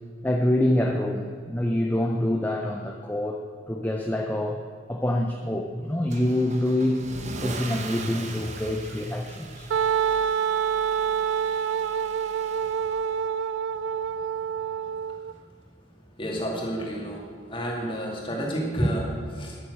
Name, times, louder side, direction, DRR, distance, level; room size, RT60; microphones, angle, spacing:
voice 1, 0.2-4.6 4.9-7.0 7.4-9.7 12.9-13.0, left 1 dB, 10° left, 2 dB, 0.6 m, -26 dB
Car / Engine starting / Accelerating revving vroom, 6.1-13.2, right 2 dB, 35° right, 0.9 m, -39 dB
Wind instrument woodwind instrument, 9.7-15.3, right 7 dB, 65° right, 0.3 m, -27 dB
voice 2, 16.2-17.2 17.5-19.6, equal, 25° left, -1 dB, 2.3 m, -29 dB
10.5 x 9.5 x 6.5 m, 2.1 s
head